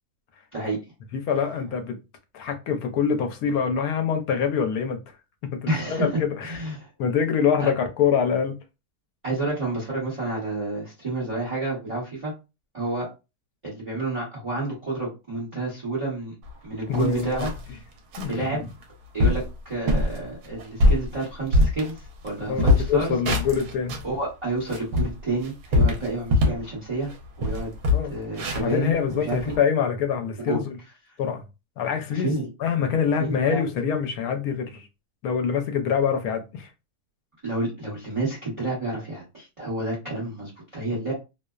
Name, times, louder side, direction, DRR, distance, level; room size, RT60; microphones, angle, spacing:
voice 1, 1.1-2.0 2.3-5.0 5.5-6.6 7.0-8.6 16.9-17.5 18.2-18.6 22.4-24.0 27.9-30.7 31.2-31.4 31.8-32.3 32.6-34.9 35.2-36.7, left 7 dB, 75° left, 1.0 m, -25 dB
voice 2, 5.7-6.9 7.6-7.7 9.2-12.3 12.7-13.1 13.6-16.3 16.6-17.5 18.3-18.6 19.1-23.1 24.0-27.1 27.4-27.7 28.1-29.4 30.5-30.6 32.1-32.5 33.2-33.6 37.4-41.1, right 2 dB, 25° right, 0.9 m, -29 dB
sound 1, 16.5-16.6 16.9-17.7 18.1-18.3 18.8-18.9 19.2-19.5 19.9-20.2 20.6-22.3 22.6-24.1 24.5-26.7 27.0-27.2 27.4-29.6, left 2 dB, 75° right, 1.1 m, -22 dB
2.7 x 2.0 x 2.3 m
omnidirectional pair, 1.7 m